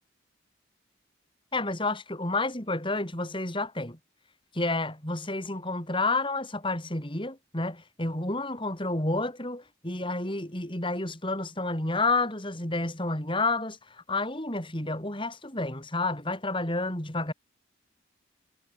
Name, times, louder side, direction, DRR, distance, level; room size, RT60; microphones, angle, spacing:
voice 1, 1.5-4.0 4.5-13.8 14.1-17.3, left 2 dB, 25° left, 4.4 m, -30 dB
head